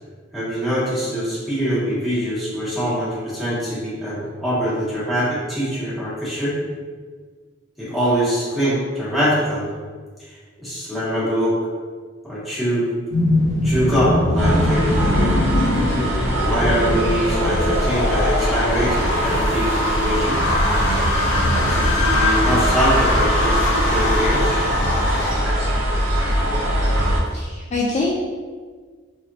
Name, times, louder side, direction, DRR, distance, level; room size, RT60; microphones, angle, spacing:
voice 1, 0.3-6.6 7.8-9.7 10.3-11.5 12.2-12.9 13.6-15.4 16.3-20.6 21.5-24.6, equal, ahead, -10 dB, 1.4 m, -23 dB
sound 1, 13.1-25.3, left 1 dB, 85° left, 0.7 m, -22 dB
sound 2, 14.4-27.2, right 1 dB, 85° right, 0.8 m, -22 dB
voice 2, 27.3-28.1, left 3 dB, 35° left, -4 dB, 0.4 m, -24 dB
3.6 x 3.3 x 2.7 m, 1.5 s
head